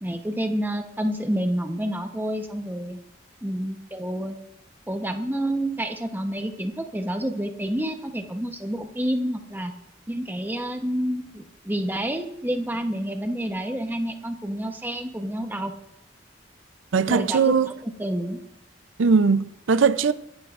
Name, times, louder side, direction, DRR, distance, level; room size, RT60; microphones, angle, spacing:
voice 1, 0.0-3.0 3.4-4.4 4.9-9.7 10.1-15.8 17.1-17.5 18.0-18.4, equal, 10° right, 0.9 m, -28 dB
voice 2, 16.9-17.7 19.0-20.1, right 5 dB, 90° right, 0.5 m, -20 dB
25.0 x 11.0 x 2.5 m
head